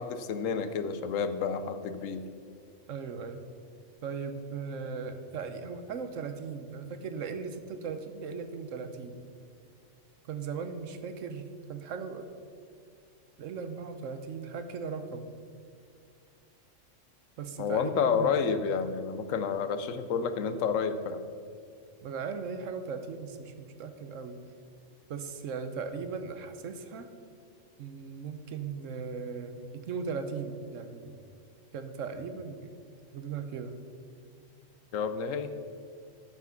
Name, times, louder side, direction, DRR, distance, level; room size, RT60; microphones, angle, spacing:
voice 1, 0.0-2.2 17.6-21.2 34.9-35.5, left 6 dB, 85° left, 10 dB, 1.1 m, -30 dB
voice 2, 2.9-3.4 4.0-9.2 10.3-12.3 13.4-15.3 17.4-18.4 22.0-24.4 25.1-27.1 27.8-31.2 31.7-32.7 33.1-33.8, right 5 dB, 75° right, 9 dB, 1.1 m, -38 dB
13.0 x 6.1 x 5.7 m, 2.3 s
omnidirectional pair, 1.3 m